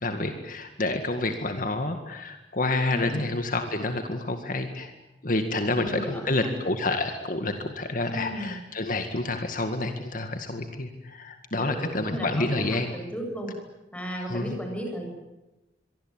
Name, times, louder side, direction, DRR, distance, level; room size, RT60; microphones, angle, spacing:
voice 1, 0.0-4.9 5.2-12.9 14.3-14.6, left 2 dB, 50° left, 6 dB, 2.0 m, -28 dB
voice 2, 5.7-6.5 8.0-8.6 11.6-13.5 13.9-15.1, equal, 10° left, 2 dB, 7.7 m, -35 dB
25.0 x 23.5 x 9.0 m, 1.0 s
head